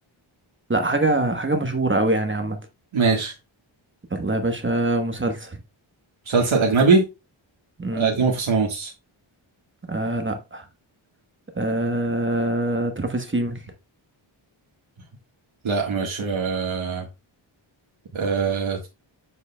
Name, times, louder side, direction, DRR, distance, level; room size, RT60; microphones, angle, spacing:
voice 1, 0.7-2.6 4.1-5.6 7.8-8.2 9.9-10.6 11.5-13.6, right 2 dB, 25° right, 1.1 m, -24 dB
voice 2, 2.9-3.3 6.3-7.0 7.9-8.9 15.6-17.0 18.1-18.8, right 4 dB, 75° right, 1.6 m, -21 dB
7.5 x 6.4 x 2.2 m
wide cardioid pair, 125°, 49 cm